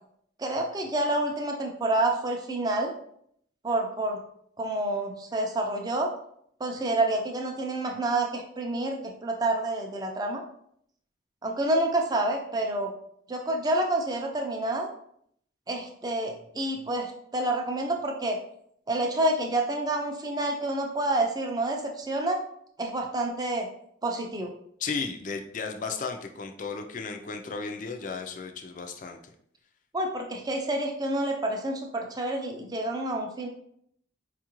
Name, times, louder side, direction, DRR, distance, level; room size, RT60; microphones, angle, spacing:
voice 1, 0.4-2.9 3.6-4.2 4.6-6.1 6.6-10.4 11.4-12.9 13.3-14.9 15.7-18.4 18.9-22.4 22.8-23.7 24.0-24.5 29.9-33.5, right 1 dB, 20° right, 2 dB, 0.4 m, -28 dB
voice 2, 24.8-29.3, left 4 dB, 40° left, 4 dB, 0.4 m, -34 dB
4.4 x 2.4 x 2.9 m, 0.69 s
head